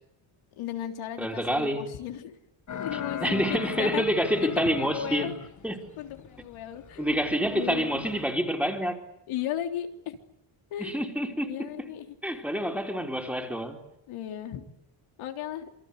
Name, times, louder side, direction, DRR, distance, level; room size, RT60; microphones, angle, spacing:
voice 1, 0.6-2.4 2.7-4.1 4.4-5.3 6.0-7.2 7.5-8.1 9.3-10.2 10.7-11.0 11.4-12.2 14.1-14.7 15.2-15.7, left 11 dB, 90° left, 3.6 m, -35 dB
voice 2, 1.2-1.8 3.2-5.3 5.6-5.8 7.0-9.0 10.8-11.5 12.2-13.8, equal, 5° right, 4.0 m, -27 dB
sound 1, 2.7-8.3, left 8 dB, 40° left, 1.6 m, -39 dB
28.0 x 24.0 x 8.3 m
cardioid pair, 130°, 47 cm